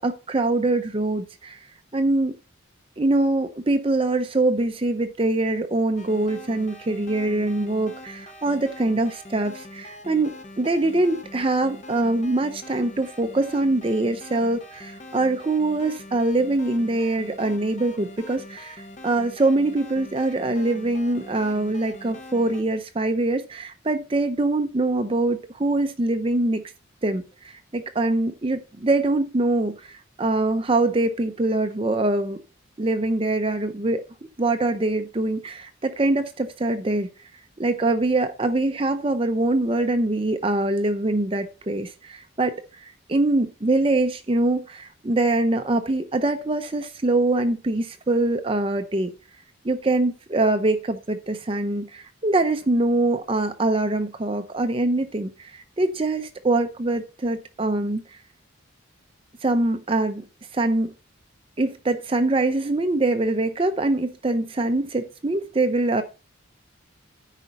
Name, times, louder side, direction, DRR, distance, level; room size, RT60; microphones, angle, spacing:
voice 1, 0.0-1.7 1.9-2.3 3.0-26.6 27.0-32.4 32.8-34.0 34.4-37.1 37.6-49.1 49.6-58.2 59.4-60.2 60.5-60.9 61.6-66.0, right 2 dB, 25° right, 0.5 m, -23 dB
sound 1, 6.0-22.6, left 1 dB, 35° left, 1.0 m, -43 dB
13.5 x 5.0 x 4.1 m
head